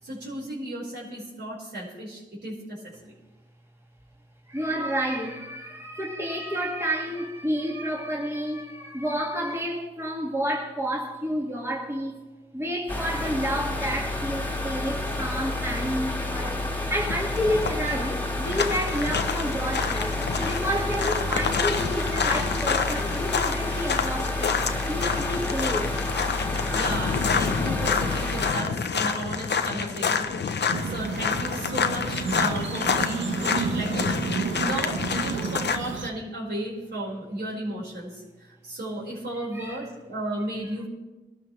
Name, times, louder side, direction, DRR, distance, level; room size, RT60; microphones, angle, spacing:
voice 1, 0.0-3.1 26.4-26.5 26.7-40.9, right 1 dB, 65° right, 5.1 m, -34 dB
voice 2, 4.5-12.2 12.5-16.6 16.9-26.0 39.5-39.9, equal, 15° right, 2.2 m, -30 dB
sound 1, 12.9-28.5, left 2 dB, 10° left, 2.1 m, -30 dB
sound 2, 17.0-35.8, left 6 dB, 65° left, 0.9 m, -28 dB
sound 3, 30.7-36.1, right 5 dB, 85° right, 1.1 m, -31 dB
21.0 x 12.5 x 3.3 m
cardioid pair, 55°, 19 cm